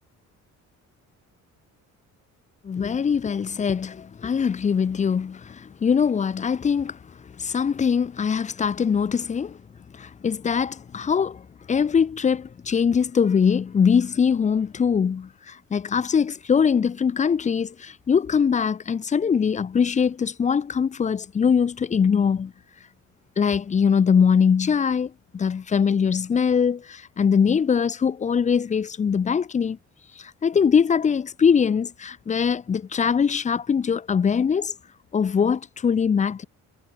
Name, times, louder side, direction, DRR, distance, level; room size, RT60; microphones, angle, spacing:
voice 1, 2.6-7.0 7.4-9.6 9.9-22.5 23.4-29.8 30.2-34.7 35.1-36.4, left 6 dB, 25° left, 0.5 m, -22 dB
cardioid pair, 130°, 30 cm